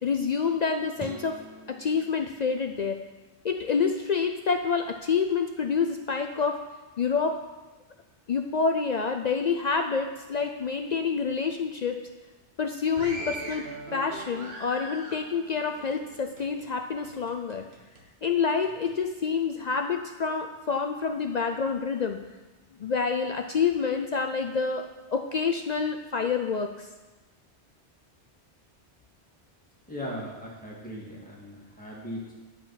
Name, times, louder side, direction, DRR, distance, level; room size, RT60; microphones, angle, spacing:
voice 1, 0.0-1.4 1.7-3.0 3.4-6.6 7.0-7.3 8.3-12.0 12.6-13.6 13.9-17.6 18.2-22.2 22.8-26.9, left 5 dB, 55° left, 5 dB, 0.5 m, -27 dB
sound 1, 1.0-3.3, right 2 dB, 25° right, 0.5 m, -46 dB
sound 2, 13.0-16.7 17.0-18.0 18.6-18.9, right 2 dB, 65° right, 1.5 m, -41 dB
voice 2, 29.9-32.3, equal, 5° left, -5 dB, 2.2 m, -38 dB
10.0 x 5.0 x 5.7 m, 1.2 s
omnidirectional pair, 1.2 m